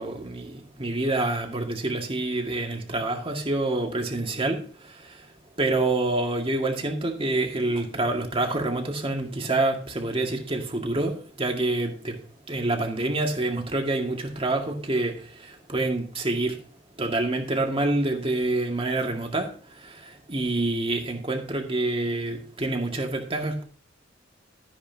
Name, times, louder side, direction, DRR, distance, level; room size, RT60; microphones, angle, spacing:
voice 1, 0.0-4.6 5.0-5.2 5.6-12.2 12.5-16.6 17.0-19.5 19.8-23.6, right 2 dB, 30° right, 2.0 m, -27 dB
13.0 x 9.9 x 2.8 m
head